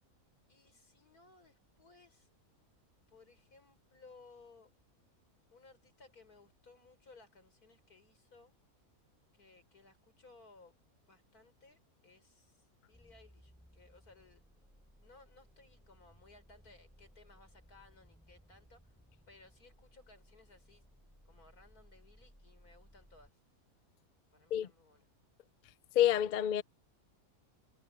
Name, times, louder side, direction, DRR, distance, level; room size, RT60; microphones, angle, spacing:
voice 1, 0.5-2.3 3.1-4.7 5.5-8.5 9.3-10.8 11.1-14.4 15.0-18.9 19.3-20.9 21.3-23.4 24.3-25.1, left 3 dB, 80° left, 5.2 m, -61 dB
sound 1, 12.9-23.3, equal, ahead, 4.2 m, -63 dB
voice 2, 25.9-26.6, left 11 dB, 65° left, 0.4 m, -28 dB
omnidirectional pair, 1.6 m